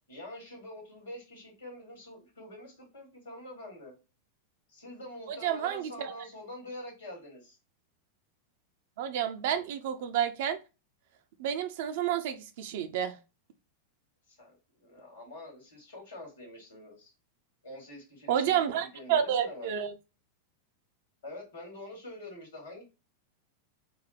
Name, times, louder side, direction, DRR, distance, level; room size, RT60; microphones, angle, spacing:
voice 1, 0.1-3.9 4.7-7.6 14.3-17.1 17.6-19.7 21.2-22.8, left 1 dB, 65° left, 1.8 m, -46 dB
voice 2, 5.3-6.1 9.0-10.6 11.4-13.1 18.3-19.9, right 9 dB, 55° right, 0.4 m, -30 dB
4.2 x 2.1 x 3.1 m
figure-of-eight pair, 90°, 0 cm